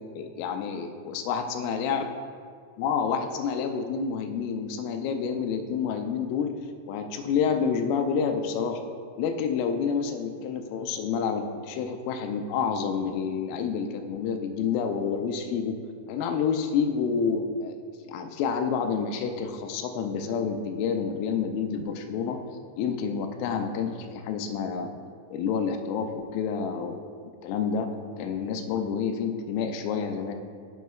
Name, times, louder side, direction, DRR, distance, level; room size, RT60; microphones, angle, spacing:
voice 1, 0.2-2.0 2.8-6.5 6.9-8.8 9.2-15.8 16.1-17.8 18.1-22.4 22.8-24.9 25.3-26.9 27.4-27.9 28.2-30.4, left 6 dB, 90° left, 6 dB, 3.2 m, -28 dB
10.5 x 7.2 x 2.3 m, 2.1 s
omnidirectional pair, 5.7 m